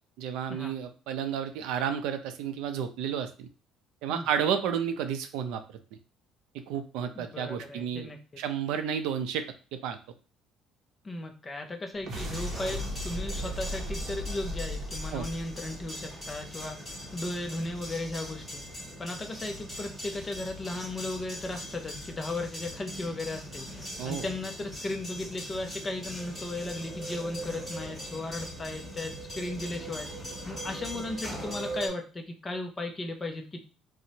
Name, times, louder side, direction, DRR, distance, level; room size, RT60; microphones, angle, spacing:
voice 1, 0.2-3.5 4.0-5.6 6.5-8.1 8.4-9.4 9.7-10.0 15.1-15.3 24.0-24.3, right 8 dB, 85° right, 8 dB, 0.5 m, -31 dB
voice 2, 7.2-8.2 11.0-18.6 19.0-33.6, left 2 dB, 15° left, 4 dB, 0.4 m, -36 dB
sound 1, 11.9-16.5, equal, 40° right, 0.7 m, -37 dB
sound 2, 12.1-31.9, equal, ahead, 1.3 m, -40 dB
4.3 x 2.0 x 2.7 m, 0.35 s
cardioid pair, 165°, 0 cm